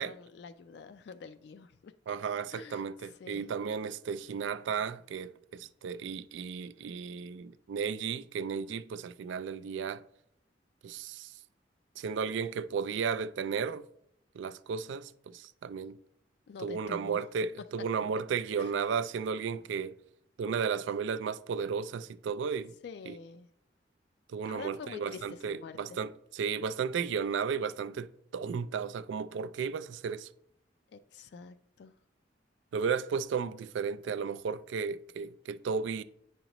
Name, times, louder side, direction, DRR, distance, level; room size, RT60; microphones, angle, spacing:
voice 1, 0.0-2.2 2.5-3.5 16.5-17.2 18.6-18.7 22.8-23.5 24.4-26.0 30.9-31.9, left 5 dB, 60° left, 0.3 m, -47 dB
voice 2, 2.1-10.0 10.8-11.3 12.0-13.8 14.4-16.0 16.6-19.9 20.4-22.7 23.1-23.2 24.3-30.3 32.7-36.0, right 6 dB, 75° right, 0.3 m, -34 dB
9.1 x 5.1 x 2.9 m
head